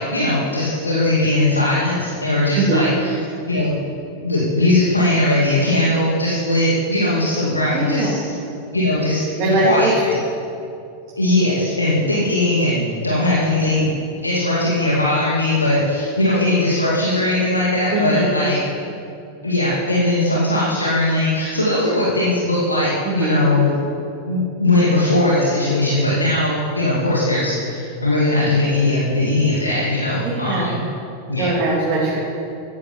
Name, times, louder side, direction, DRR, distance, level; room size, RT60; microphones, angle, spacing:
voice 1, 0.0-3.1 3.5-3.7 4.2-8.3 8.7-9.2 9.6-10.1 11.2-13.9 14.2-18.6 19.4-23.7 24.3-30.7 31.3-31.5, left 1 dB, 80° left, -6 dB, 2.4 m, -19 dB
voice 2, 7.7-8.1 9.4-10.2 17.9-18.3 23.0-23.3 30.2-30.7 31.4-32.2, right 2 dB, 35° right, -6 dB, 3.2 m, -20 dB
14.5 x 11.0 x 5.8 m, 2.6 s
figure-of-eight pair, 90°, 0 cm